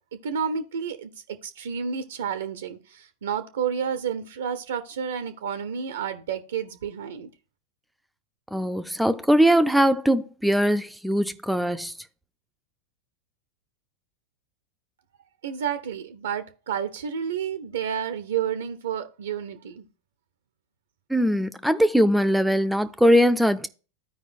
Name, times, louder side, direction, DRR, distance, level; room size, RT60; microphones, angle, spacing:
voice 1, 0.2-7.3 15.4-19.9, right 7 dB, 70° right, 0.6 m, -30 dB
voice 2, 8.5-11.9 21.1-23.7, equal, 5° right, 0.4 m, -21 dB
14.0 x 4.9 x 2.5 m
figure-of-eight pair, 90°, 0 cm